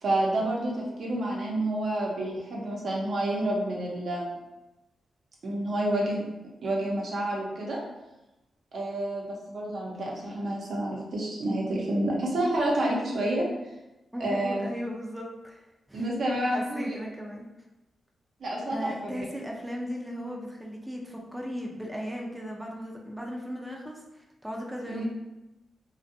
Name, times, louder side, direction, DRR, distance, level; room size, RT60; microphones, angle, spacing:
voice 1, 0.0-4.4 5.4-6.3 6.6-7.8 8.7-13.4 14.2-14.7 15.9-17.0 18.4-19.1 24.9-25.0, right 1 dB, 70° right, -3 dB, 0.7 m, -29 dB
voice 2, 14.1-16.1 16.4-17.4 18.7-25.1, equal, 5° right, -1 dB, 0.4 m, -37 dB
2.5 x 2.2 x 2.6 m, 1.0 s
cardioid pair, 60°, 0 cm